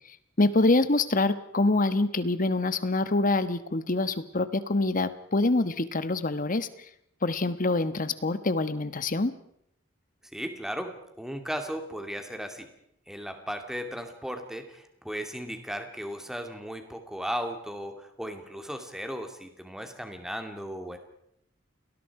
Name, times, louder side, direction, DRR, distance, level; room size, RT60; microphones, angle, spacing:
voice 1, 0.4-6.7 7.2-9.3, left 2 dB, 45° left, 13 dB, 1.3 m, -25 dB
voice 2, 10.3-12.7 13.1-21.0, equal, 5° right, 5 dB, 2.6 m, -36 dB
29.0 x 20.0 x 4.9 m, 0.70 s
head